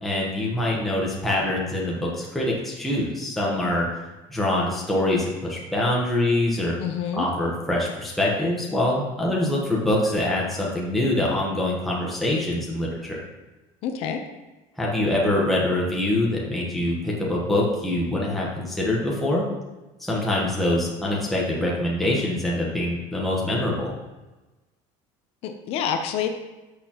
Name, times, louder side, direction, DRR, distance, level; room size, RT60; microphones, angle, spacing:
voice 1, 0.0-3.9 4.3-6.8 7.1-13.2 14.8-19.4 20.0-23.9, left 1 dB, ahead, -4 dB, 1.1 m, -24 dB
voice 2, 6.8-7.3 13.8-14.2 25.4-26.3, left 8 dB, 50° left, 6 dB, 0.7 m, -27 dB
11.5 x 6.7 x 3.0 m, 1.1 s
cardioid pair, 180°, 13 cm